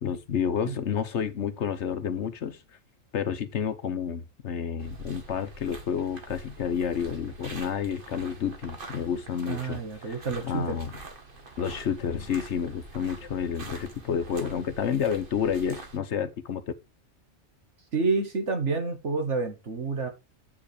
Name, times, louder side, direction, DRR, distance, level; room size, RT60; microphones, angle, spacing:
voice 1, 0.0-2.6 3.1-10.1 10.4-10.9 11.6-16.6, left 7 dB, 65° left, 1.1 m, -30 dB
sound 1, 4.8-16.0, right 3 dB, 45° right, 1.5 m, -45 dB
voice 2, 9.5-10.8 17.9-20.1, right 4 dB, 65° right, 2.1 m, -29 dB
8.4 x 5.0 x 4.9 m
omnidirectional pair, 1.4 m